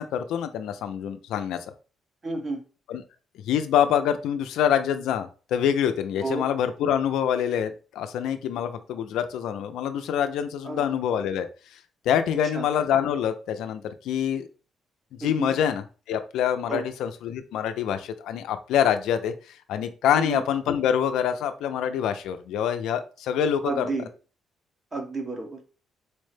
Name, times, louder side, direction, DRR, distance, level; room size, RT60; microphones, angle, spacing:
voice 1, 0.0-1.7 2.9-3.0 3.4-11.5 11.7-11.8 12.1-14.5 15.1-19.3 19.7-23.8, left 9 dB, 85° left, 9 dB, 0.4 m, -26 dB
voice 2, 2.2-2.6 6.2-6.5 10.6-10.8 12.5-12.6 15.2-15.6 16.7-16.8 20.1-20.4 23.6-24.1 24.9-25.6, right 3 dB, 30° right, 3 dB, 1.1 m, -31 dB
4.4 x 2.1 x 3.2 m, 0.36 s
cardioid pair, 90°, 0 cm